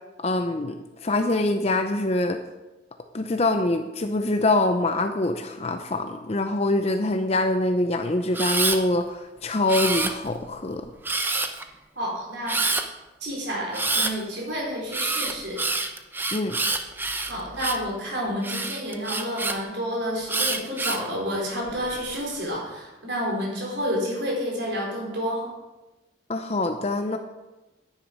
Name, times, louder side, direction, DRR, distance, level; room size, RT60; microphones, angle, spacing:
voice 1, 0.2-0.8 1.0-2.4 3.1-10.9 16.3-16.6 26.3-27.2, left 2 dB, 35° left, 7 dB, 0.6 m, -24 dB
Camera, 8.3-8.8 9.7-10.4 11.0-11.6 12.5-12.8 13.7-14.1 14.9-17.9 18.4-19.5 20.3-21.1 21.7-22.2, right 3 dB, 10° right, 0.7 m, -27 dB
voice 2, 12.0-12.7 13.2-15.6 17.1-25.5, equal, 65° right, -2 dB, 4.5 m, -30 dB
10.5 x 10.0 x 5.3 m, 1.1 s
head